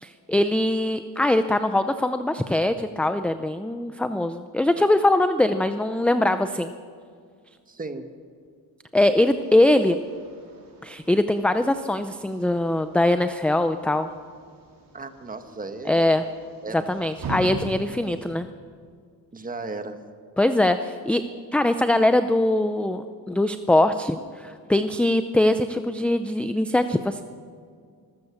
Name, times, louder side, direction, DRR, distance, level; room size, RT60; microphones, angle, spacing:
voice 1, 0.0-6.7 8.9-10.0 10.8-14.1 15.9-16.2 16.7-18.5 20.4-21.2 21.5-27.2, left 1 dB, 5° left, 9 dB, 0.5 m, -22 dB
voice 2, 7.7-8.1 14.9-16.1 16.6-16.9 19.3-20.0, right 3 dB, 20° right, 8 dB, 1.3 m, -35 dB
sound 1, 9.3-18.3, right 2 dB, 60° right, 4.3 m, -41 dB
25.5 x 14.5 x 7.0 m, 2.1 s
cardioid pair, 155°, 39 cm